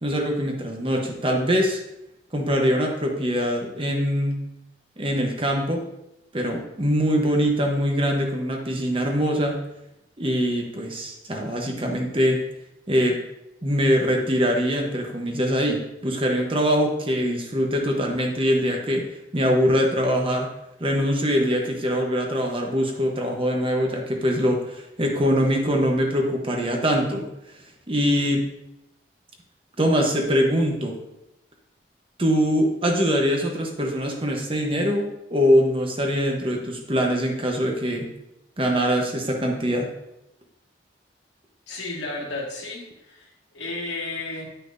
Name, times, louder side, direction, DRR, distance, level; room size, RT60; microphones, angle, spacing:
voice 1, 0.0-1.8 2.3-4.4 5.0-5.9 6.3-9.6 10.2-12.4 12.9-13.2 13.6-19.0 19.3-20.5 20.8-27.3 27.9-28.5 29.8-31.0 32.2-38.1 38.6-39.9, equal, 30° right, 1 dB, 1.0 m, -23 dB
voice 2, 41.7-43.3 43.5-44.5, left 2 dB, 90° left, -3 dB, 2.1 m, -32 dB
9.8 x 5.7 x 2.6 m, 0.86 s
head